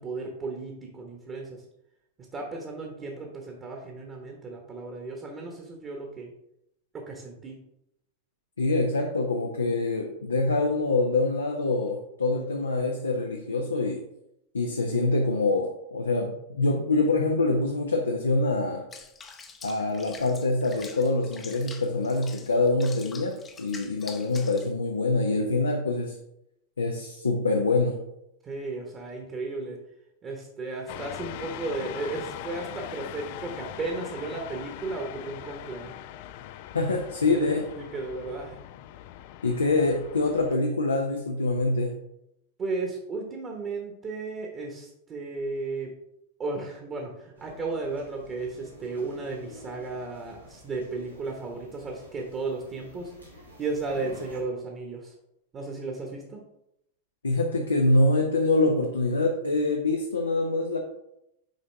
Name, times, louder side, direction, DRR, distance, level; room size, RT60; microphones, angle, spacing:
voice 1, 0.0-1.5 2.3-6.3 6.9-7.6 28.4-29.8 30.2-35.9 37.3-38.6 42.6-45.9 46.4-53.1 53.6-55.1 55.5-56.4, right 3 dB, 25° right, 1 dB, 1.2 m, -34 dB
voice 2, 8.6-14.0 14.5-18.9 19.6-26.2 26.8-28.0 36.7-37.6 39.4-42.0 57.2-60.8, left 2 dB, 75° left, 2 dB, 0.6 m, -25 dB
Water / Bathtub (filling or washing), 18.9-24.7, left 5 dB, 20° left, 0.7 m, -45 dB
sound 1, 30.9-40.6, left 12 dB, 50° left, 0.3 m, -41 dB
sound 2, 47.3-54.4, left 1 dB, 90° right, 1.6 m, -50 dB
6.6 x 4.6 x 3.4 m, 0.80 s
figure-of-eight pair, 90°, 0 cm